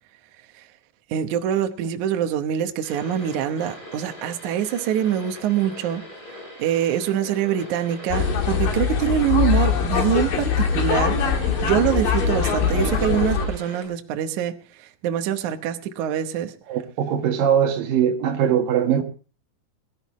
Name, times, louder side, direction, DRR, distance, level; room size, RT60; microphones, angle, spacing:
voice 1, 1.1-6.0 6.6-14.5 15.0-16.5, right 10 dB, 90° right, 1.7 m, -24 dB
sound 1, 2.8-13.8, left 1 dB, 10° left, 6.2 m, -41 dB
sound 2, 8.1-13.5, left 6 dB, 55° left, 3.4 m, -22 dB
voice 2, 16.7-19.0, right 9 dB, 60° right, 2.8 m, -21 dB
22.0 x 13.0 x 3.1 m
omnidirectional pair, 5.2 m